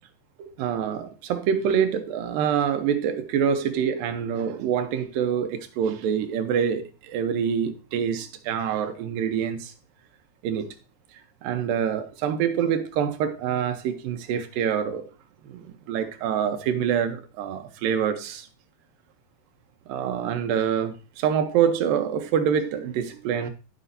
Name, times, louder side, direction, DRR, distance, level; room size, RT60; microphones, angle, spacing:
voice 1, 0.4-9.7 10.4-10.7 11.4-15.1 15.5-18.5 19.9-23.5, right 8 dB, 90° right, 2.6 m, -26 dB
15.5 x 5.2 x 2.7 m
omnidirectional pair, 3.9 m